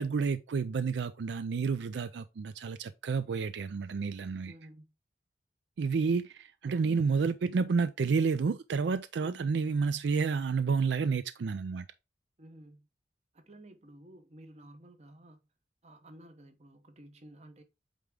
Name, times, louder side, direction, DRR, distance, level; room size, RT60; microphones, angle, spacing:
voice 1, 0.0-4.5 5.8-11.9, right 5 dB, 75° right, 0.4 m, -30 dB
voice 2, 4.5-4.9 6.6-7.2 9.2-9.4 12.4-12.9 13.3-15.4 15.8-17.6, right 1 dB, 35° right, 1.0 m, -53 dB
8.2 x 3.5 x 3.6 m
head